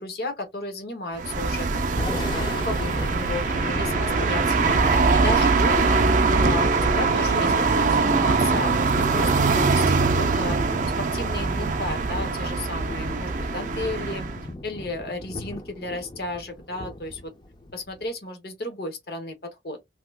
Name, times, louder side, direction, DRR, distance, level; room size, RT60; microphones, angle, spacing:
voice 1, 0.0-6.1 6.4-14.3 14.6-17.3 17.7-19.8, left 2 dB, 60° left, 1.0 m, -33 dB
sound 1, 1.2-14.4, right 4 dB, 45° right, 0.4 m, -22 dB
Thunder / Rain, 1.8-18.1, left 2 dB, 25° left, 0.5 m, -37 dB
2.8 x 2.3 x 3.4 m
head